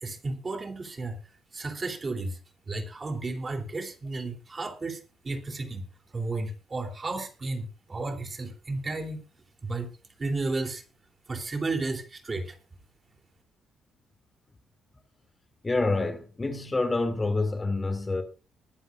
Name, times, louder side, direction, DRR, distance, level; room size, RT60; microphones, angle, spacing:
voice 1, 0.0-1.2 1.5-2.4 2.7-5.9 6.1-9.2 9.6-9.9 10.2-10.8 11.3-12.6, right 3 dB, 30° right, 3.2 m, -33 dB
voice 2, 15.6-18.2, left 3 dB, 25° left, 2.6 m, -27 dB
21.0 x 11.0 x 2.5 m
cardioid pair, 90°, 0 cm